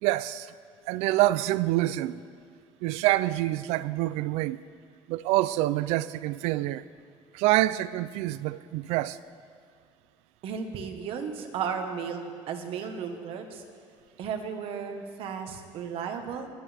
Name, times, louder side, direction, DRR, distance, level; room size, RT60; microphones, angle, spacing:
voice 1, 0.0-0.5 0.9-2.2 2.8-4.6 5.1-6.8 7.3-9.2, right 16 dB, 85° right, 0.4 m, -26 dB
voice 2, 10.4-13.6 14.2-16.5, right 6 dB, 60° right, 1.4 m, -34 dB
24.0 x 11.0 x 3.5 m
cardioid pair, 135°, 11 cm